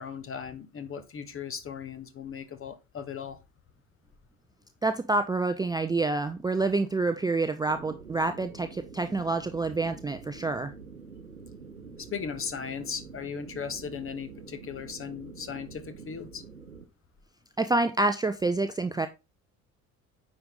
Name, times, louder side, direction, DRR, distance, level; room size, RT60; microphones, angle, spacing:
voice 1, 0.0-3.4 12.0-16.4, left 7 dB, 30° left, 1.3 m, -37 dB
voice 2, 4.8-10.7 17.6-19.1, right 3 dB, 10° right, 0.5 m, -27 dB
sound 1, 7.7-16.8, right 5 dB, 90° right, 0.9 m, -46 dB
9.3 x 4.9 x 3.8 m
figure-of-eight pair, 55°, 42 cm